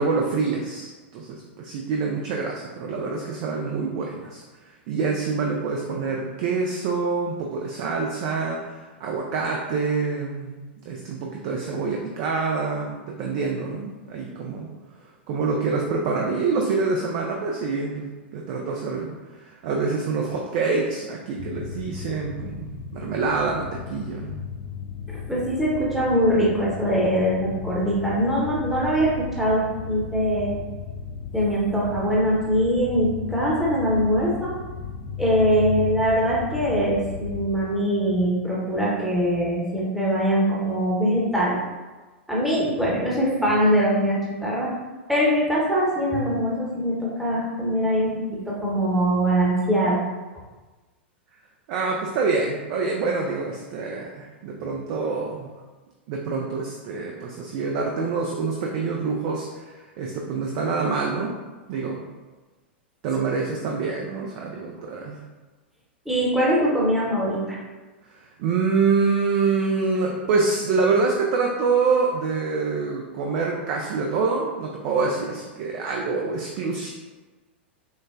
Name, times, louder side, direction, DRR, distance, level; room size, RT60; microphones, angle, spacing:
voice 1, 0.0-4.4 4.9-14.7 15.3-19.1 19.4-24.3 51.7-55.5 56.1-59.7 60.0-61.3 61.7-62.0 63.0-65.2 68.1-76.9, right 4 dB, 45° right, 0 dB, 0.4 m, -26 dB
sound 1, 21.4-37.5, left 6 dB, 40° left, 0.4 m, -35 dB
voice 2, 25.1-30.6 31.3-34.5 35.2-41.6 42.3-44.7 45.1-50.0 66.1-67.6, equal, 5° right, -6 dB, 0.9 m, -22 dB
6.2 x 2.1 x 2.4 m, 1.2 s
figure-of-eight pair, 95°, 6 cm